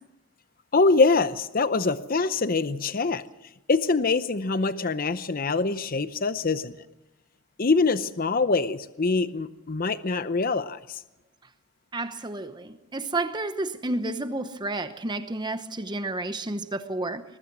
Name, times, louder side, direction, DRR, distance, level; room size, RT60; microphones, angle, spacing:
voice 1, 0.7-3.2 3.7-6.7 7.6-11.0, left 3 dB, 40° left, 0.7 m, -24 dB
voice 2, 11.9-17.2, right 2 dB, 20° right, 0.9 m, -31 dB
22.5 x 19.5 x 6.1 m
head